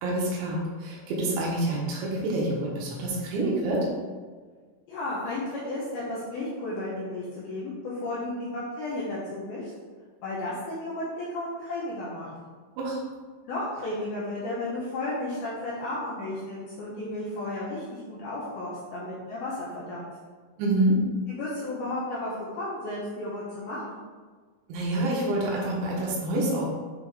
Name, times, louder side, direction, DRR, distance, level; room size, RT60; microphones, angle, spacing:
voice 1, 0.0-3.9 12.8-13.0 20.6-21.1 24.7-26.6, right 1 dB, 80° right, -3 dB, 3.3 m, -27 dB
voice 2, 4.9-9.7 10.2-12.3 13.4-20.1 21.3-24.0, left 2 dB, 75° left, -7 dB, 2.3 m, -33 dB
8.0 x 3.6 x 3.4 m, 1.5 s
omnidirectional pair, 5.4 m